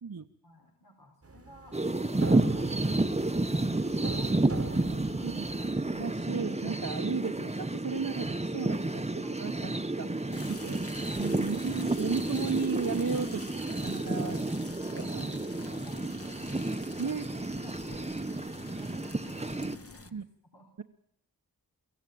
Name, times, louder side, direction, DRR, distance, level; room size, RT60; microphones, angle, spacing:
voice 1, 0.4-5.3 9.2-9.4 10.1-10.8 11.1-11.4 13.0-13.2 14.0-14.4 14.8-15.3 15.6-16.5 17.6-20.2 20.5-20.7, left 2 dB, 85° left, 2 dB, 3.9 m, -55 dB
sound 1, 1.2-6.1, right 3 dB, 40° right, 1.3 m, -39 dB
sound 2, 1.7-19.8, right 2 dB, 15° right, 0.9 m, -31 dB
voice 2, 5.9-9.7 10.0-10.1 10.6-10.8 11.2-14.5 15.1-15.3 17.0-17.3 20.1-20.2, right 5 dB, 60° right, 3 dB, 1.1 m, -34 dB
sound 3, 10.3-20.1, left 3 dB, 40° left, 1.3 m, -47 dB
24.0 x 16.0 x 9.3 m, 0.70 s
wide cardioid pair, 50°, 37 cm